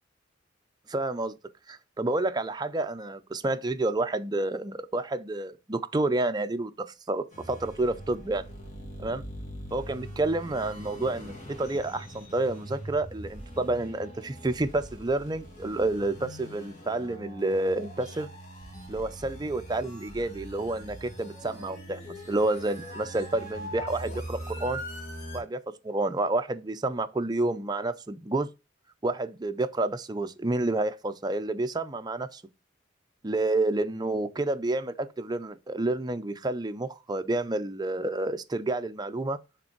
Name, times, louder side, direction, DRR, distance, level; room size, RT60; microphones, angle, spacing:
voice 1, 0.9-1.3 1.7-6.7 7.1-8.4 9.0-9.2 9.7-18.3 18.9-22.0 22.3-24.8 25.3-28.5 29.0-32.4 33.2-39.4, right 2 dB, 20° right, 0.5 m, -29 dB
sound 1, 7.3-25.4, equal, 40° left, 2.1 m, -42 dB
6.7 x 3.6 x 4.5 m
head